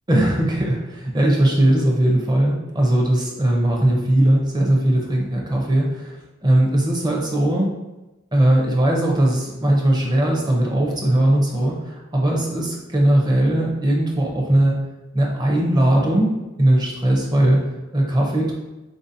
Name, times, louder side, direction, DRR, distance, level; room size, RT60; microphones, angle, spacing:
voice 1, 0.1-7.7 8.3-14.8 15.1-16.3 16.6-18.5, right 1 dB, 20° right, -1 dB, 0.6 m, -19 dB
3.8 x 2.6 x 2.6 m, 1.1 s
head